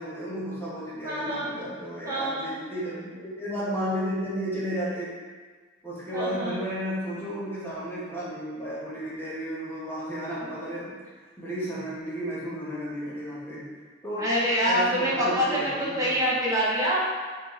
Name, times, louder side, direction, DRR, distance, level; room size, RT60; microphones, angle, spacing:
voice 1, 0.0-5.1 5.8-11.0 11.4-13.7 14.0-14.3 14.6-16.2, equal, 10° left, -8 dB, 0.9 m, -33 dB
voice 2, 1.0-1.5 2.0-2.5 6.1-6.6 14.2-17.0, equal, 15° right, -7 dB, 0.7 m, -26 dB
4.1 x 2.8 x 3.1 m, 1.5 s
head